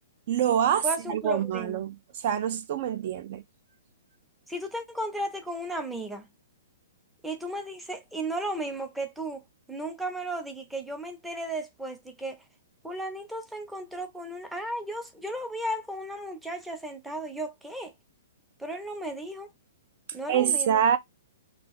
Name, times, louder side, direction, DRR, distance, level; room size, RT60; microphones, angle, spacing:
voice 1, 0.3-3.4 20.3-21.0, right 9 dB, 50° right, 0.3 m, -26 dB
voice 2, 0.8-1.8 4.5-6.3 7.2-12.4 12.8-17.9 18.6-19.5 20.1-20.8, right 1 dB, 5° right, 0.5 m, -35 dB
2.5 x 2.2 x 3.4 m
hypercardioid pair, 140°, 0 cm